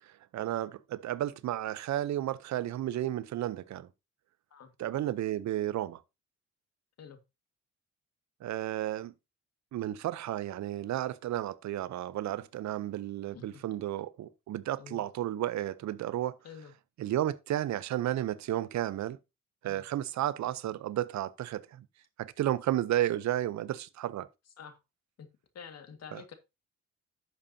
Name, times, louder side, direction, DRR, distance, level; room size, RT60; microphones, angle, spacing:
voice 1, 0.1-3.9 4.8-6.0 8.4-9.1 9.7-16.4 17.0-19.2 19.6-21.9 22.2-24.3 26.1-26.2, right 13 dB, 70° right, 0.7 m, -33 dB
voice 2, 13.3-13.8 14.8-15.1 16.4-16.7 19.6-19.8 24.6-24.8 25.2-25.3 25.5-26.3, left 7 dB, 55° left, 1.8 m, -48 dB
11.0 x 7.2 x 2.7 m
cardioid pair, 90°, 30 cm